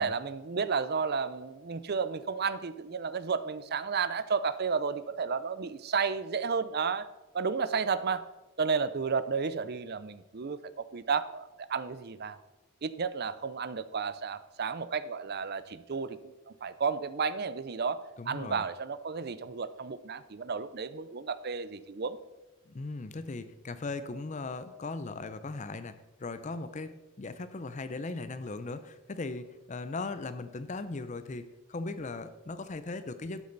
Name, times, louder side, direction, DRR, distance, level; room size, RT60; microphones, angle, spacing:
voice 1, 0.0-7.1 7.3-8.2 8.6-12.4 12.8-22.2, right 5 dB, 45° right, 14 dB, 0.5 m, -32 dB
voice 2, 18.2-18.6 22.7-33.4, left 3 dB, 35° left, 12 dB, 0.5 m, -38 dB
12.0 x 8.6 x 3.9 m, 1.1 s
head